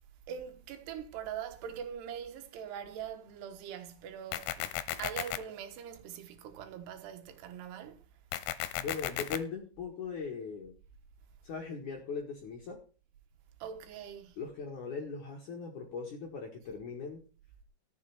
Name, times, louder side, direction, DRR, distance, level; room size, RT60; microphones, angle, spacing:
voice 1, 0.3-8.0 13.6-14.4, right 8 dB, 75° right, 3.3 m, -42 dB
sound 1, 4.3-5.4 8.3-9.4, left 13 dB, 85° left, 3.1 m, -34 dB
voice 2, 8.8-10.7 11.4-12.8 14.4-17.2, left 5 dB, 55° left, 2.7 m, -39 dB
13.5 x 7.2 x 5.9 m
omnidirectional pair, 5.1 m